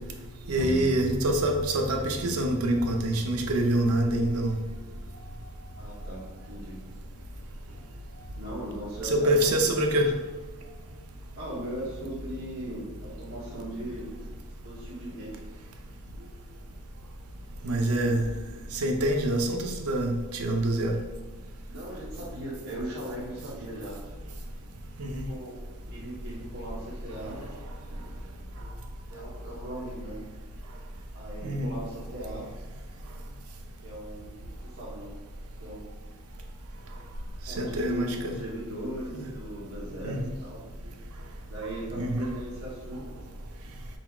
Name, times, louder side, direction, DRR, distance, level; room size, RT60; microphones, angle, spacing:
voice 1, 0.5-4.6 9.0-10.1 17.6-18.3 18.7-21.0 25.0-25.2 31.4-31.7 37.6-38.4 39.1-39.2 40.0-40.3 42.0-42.3, right 1 dB, 85° right, 4 dB, 0.6 m, -26 dB
sound 1, 0.6-9.4 9.8-9.9, left 1 dB, 80° left, 0.9 m, -42 dB
voice 2, 5.8-6.8 8.3-9.6 11.3-14.1 14.6-15.4 17.7-18.2 21.7-24.0 25.2-25.6 25.9-27.5 29.1-30.2 31.1-32.5 33.8-34.3 34.6-35.1 35.6-35.9 37.5-40.6 41.4-43.1, right 1 dB, 70° right, -8 dB, 0.9 m, -38 dB
4.0 x 2.3 x 4.3 m, 1.2 s
head